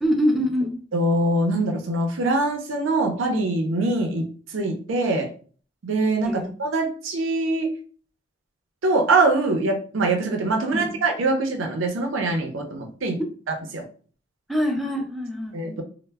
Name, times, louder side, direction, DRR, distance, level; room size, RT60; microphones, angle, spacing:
voice 1, 0.0-0.7 6.2-6.5 10.7-11.0 14.5-15.6, equal, ahead, 1 dB, 0.4 m, -24 dB
voice 2, 0.9-4.3 4.5-5.3 5.8-7.7 8.8-13.2 13.7-13.8 15.5-15.8, right 2 dB, 85° right, 4 dB, 0.5 m, -23 dB
2.1 x 2.0 x 3.3 m, 0.43 s
head